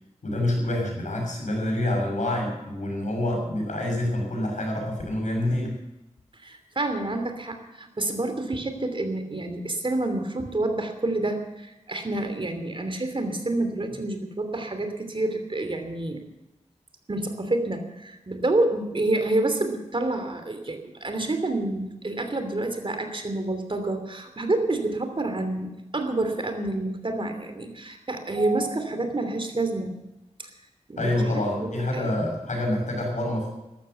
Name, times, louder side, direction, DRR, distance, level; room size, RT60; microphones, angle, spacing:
voice 1, 0.2-5.8 31.0-33.5, left 1 dB, 80° left, 0 dB, 6.9 m, -27 dB
voice 2, 6.4-16.2 17.1-29.9 30.4-30.5 30.9-32.1, right 2 dB, 45° right, 7 dB, 3.0 m, -28 dB
14.0 x 13.0 x 6.9 m, 0.98 s
wide cardioid pair, 55°, 12 cm